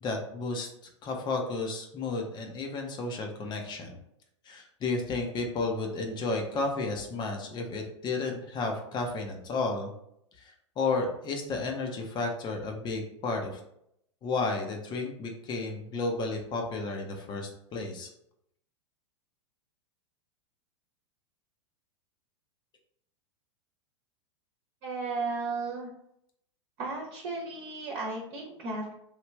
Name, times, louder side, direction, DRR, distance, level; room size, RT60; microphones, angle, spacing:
voice 1, 0.0-0.7 1.0-4.0 4.5-9.9 10.4-13.6 14.2-18.1, left 3 dB, 30° left, 2 dB, 0.6 m, -32 dB
voice 2, 24.8-25.9 26.8-28.9, right 3 dB, 45° right, -2 dB, 1.0 m, -34 dB
3.2 x 2.4 x 3.3 m, 0.74 s
figure-of-eight pair, 95°, 16 cm